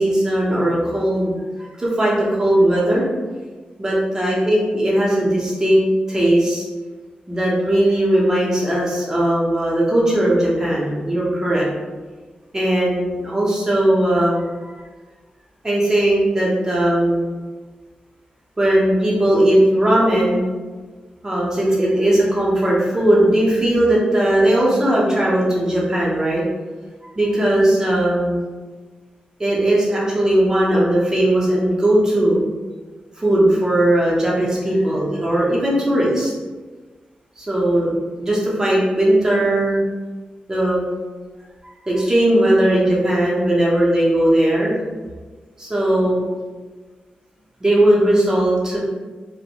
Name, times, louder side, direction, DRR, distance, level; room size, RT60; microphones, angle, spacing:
voice 1, 0.0-1.3 1.6-3.0 3.8-6.6 7.3-11.7 12.5-14.8 15.6-17.3 18.6-20.4 21.2-26.4 27.2-28.4 29.4-32.4 33.2-36.3 37.4-39.8 40.5-40.8 41.9-44.7 45.6-46.2 47.6-48.8, right 1 dB, 20° right, -5 dB, 0.7 m, -18 dB
2.4 x 2.1 x 2.8 m, 1.4 s
wide cardioid pair, 145°, 3 cm